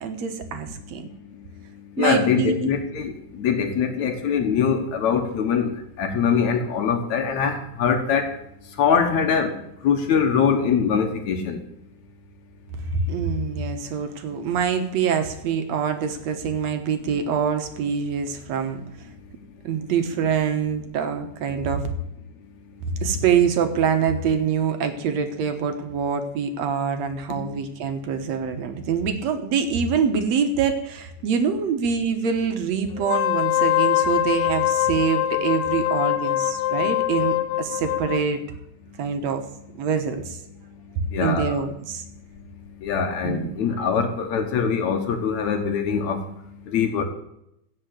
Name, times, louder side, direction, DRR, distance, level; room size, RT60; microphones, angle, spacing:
voice 1, 0.0-1.1 2.0-2.7 12.9-18.8 19.6-21.8 23.0-38.4 39.0-39.4 39.8-40.4 41.2-42.0 43.2-43.5, right 6 dB, 65° right, 7 dB, 2.2 m, -25 dB
voice 2, 1.0-8.3 8.6-11.7 27.3-27.6 41.1-41.6 42.8-47.0, left 6 dB, 70° left, 5 dB, 2.5 m, -23 dB
Wind instrument woodwind instrument, 33.0-38.3, left 14 dB, 90° left, 2.3 m, -23 dB
16.5 x 5.9 x 8.0 m, 0.78 s
omnidirectional pair, 3.5 m